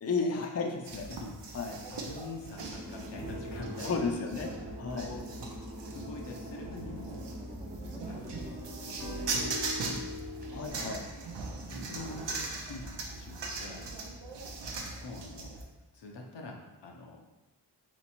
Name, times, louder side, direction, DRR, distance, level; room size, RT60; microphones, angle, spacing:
voice 1, 0.0-1.0 1.5-1.8 3.8-4.5 4.8-5.1 10.5-11.0, left 4 dB, 35° left, 1 dB, 0.5 m, -32 dB
sound 1, 0.8-15.6, right 3 dB, 80° right, 0.7 m, -40 dB
voice 2, 1.9-4.3 4.9-5.2 5.9-7.2 8.1-10.1 11.7-13.9 15.0-15.6 15.9-16.6 16.8-17.2, left 2 dB, 80° left, 0 dB, 0.8 m, -45 dB
sound 2, 2.6-9.7, equal, 15° right, 0.6 m, -45 dB
sound 3, 3.2-8.0 8.3-10.7, left 1 dB, 40° right, 1.1 m, -44 dB
3.2 x 3.0 x 4.2 m, 1.0 s
cardioid pair, 60°, 42 cm